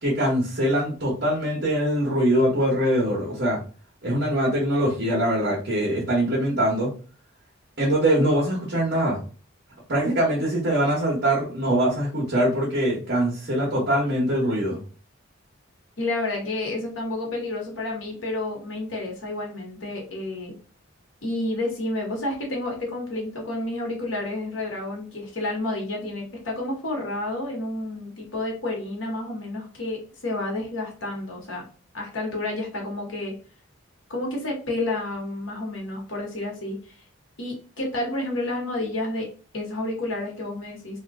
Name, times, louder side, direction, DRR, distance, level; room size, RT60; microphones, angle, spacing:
voice 1, 0.0-3.6 4.0-6.9 7.8-9.2 9.9-14.8, right 1 dB, 55° right, -5 dB, 1.1 m, -23 dB
voice 2, 16.0-20.5 21.2-31.6 31.9-33.3 34.1-37.0 37.4-39.3 39.5-41.0, left 2 dB, 80° left, -1 dB, 1.1 m, -30 dB
2.9 x 2.3 x 3.5 m, 0.38 s
head